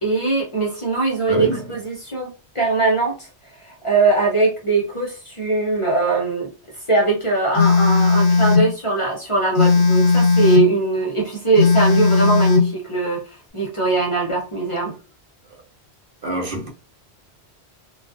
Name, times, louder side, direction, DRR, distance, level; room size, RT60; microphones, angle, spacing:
voice 1, 0.0-2.3 2.5-3.3 3.8-6.5 6.9-13.2 13.5-14.9, right 3 dB, 35° left, 0.6 m, -21 dB
voice 2, 1.3-1.7 16.2-16.7, right 2 dB, 60° right, 0.8 m, -25 dB
Telephone, 7.6-8.7 9.6-10.7 11.6-12.7, left 4 dB, 70° left, 0.8 m, -15 dB
2.3 x 2.3 x 2.5 m
omnidirectional pair, 1.1 m